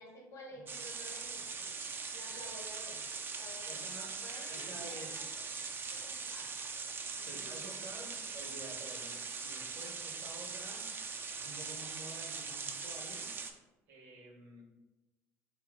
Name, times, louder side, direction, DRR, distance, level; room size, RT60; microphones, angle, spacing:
voice 1, 0.0-1.7 2.1-3.0 3.4-3.9 4.2-5.3 5.6-6.5 7.1-7.6, left 1 dB, 55° left, 0 dB, 1.2 m, -52 dB
sound 1, 0.7-13.5, right 5 dB, 30° right, 0.4 m, -41 dB
voice 2, 2.0-2.4 3.6-4.2 4.5-5.2 7.2-10.9 11.3-13.3 13.9-14.6, right 2 dB, 65° right, 0 dB, 1.2 m, -50 dB
3.2 x 2.9 x 3.7 m, 1.1 s
hypercardioid pair, 75°, 7 cm